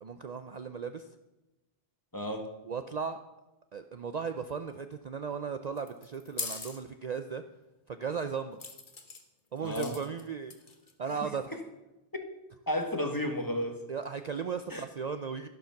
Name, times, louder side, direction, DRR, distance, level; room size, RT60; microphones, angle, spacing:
voice 1, 0.0-1.1 2.6-3.2 3.7-7.4 7.9-8.6 9.5-10.5 11.0-11.6 13.9-15.5, right 6 dB, 50° right, 9 dB, 0.6 m, -36 dB
voice 2, 2.1-2.5 9.6-9.9 11.1-11.3 12.7-13.8 14.7-14.8, left 1 dB, 20° left, 5 dB, 1.6 m, -32 dB
sound 1, 5.8-6.8 8.6-9.2 9.6-10.2 10.5-10.9, left 4 dB, 50° left, 1.5 m, -40 dB
12.0 x 12.0 x 5.8 m, 1.0 s
omnidirectional pair, 1.0 m